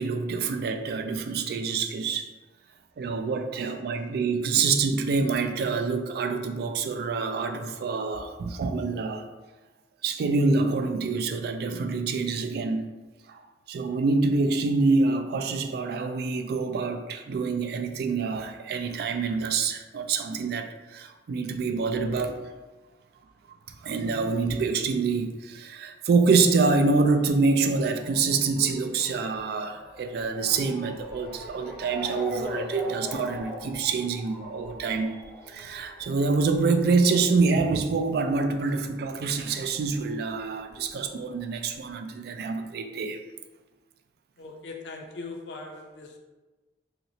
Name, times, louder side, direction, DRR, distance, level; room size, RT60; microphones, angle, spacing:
voice 1, 0.0-2.3 3.0-9.3 10.0-12.9 13.3-13.4 13.7-22.4 23.8-35.2 35.5-43.2, right 4 dB, 60° right, 6 dB, 0.3 m, -26 dB
Motor vehicle (road) / Siren, 26.4-39.5 39.7-40.9 41.5-41.6 41.9-42.0, equal, 5° right, 0.5 m, -42 dB
voice 2, 44.4-46.2, left 3 dB, 80° left, 2 dB, 0.5 m, -40 dB
3.2 x 2.8 x 2.7 m, 1.2 s
head